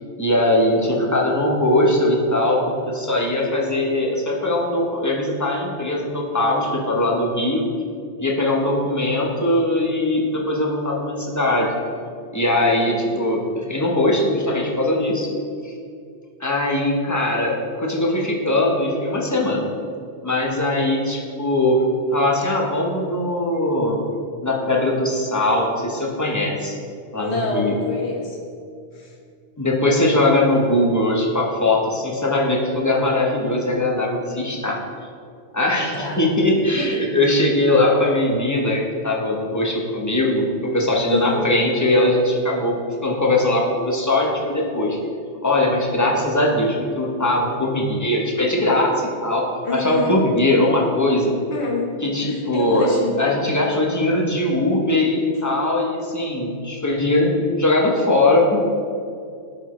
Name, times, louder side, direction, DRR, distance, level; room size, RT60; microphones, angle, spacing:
voice 1, 0.2-7.7 8.2-11.7 12.3-15.3 15.6-15.7 16.4-19.6 20.2-21.8 22.1-24.0 24.4-26.8 27.1-27.8 29.6-34.8 35.5-42.7 43.0-45.0 45.4-51.3 52.0-52.9 53.2-58.6, left 1 dB, 15° left, -2 dB, 0.8 m, -20 dB
voice 2, 27.2-28.4 29.0-29.1 35.9-36.2 36.8-36.9 41.1-41.5 49.6-50.2 51.5-51.9 52.2-53.2, left 2 dB, 65° left, -2 dB, 1.5 m, -26 dB
11.5 x 4.3 x 3.1 m, 2.3 s
omnidirectional pair, 1.2 m